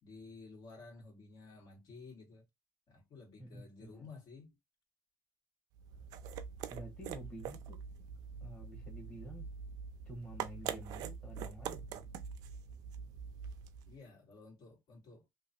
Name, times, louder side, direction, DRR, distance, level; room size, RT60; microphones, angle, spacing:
voice 1, 0.0-2.4 2.9-4.6 13.9-15.3, left 4 dB, 65° left, 1.8 m, -53 dB
voice 2, 3.4-4.1 6.7-7.8 8.4-9.5 10.0-12.1, equal, 15° left, 1.2 m, -49 dB
sound 1, 5.7-14.0, right 7 dB, 80° right, 0.4 m, -44 dB
3.0 x 2.4 x 2.6 m
cardioid pair, 130°, 6 cm